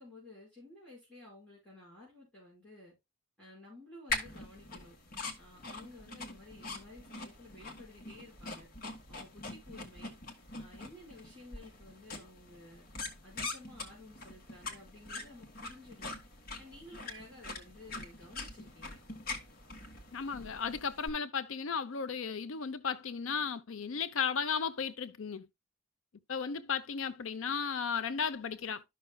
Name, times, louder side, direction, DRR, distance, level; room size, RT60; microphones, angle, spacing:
voice 1, 0.0-2.9 3.4-5.0 5.4-8.7 9.1-10.2 10.6-12.9 13.2-16.1 16.6-19.0, left 2 dB, 5° left, 5.1 m, -53 dB
sound 1, 4.1-21.1, left 3 dB, 45° left, 1.6 m, -44 dB
voice 2, 20.1-25.5 26.3-28.8, left 6 dB, 70° left, 0.6 m, -35 dB
12.5 x 5.9 x 2.3 m
head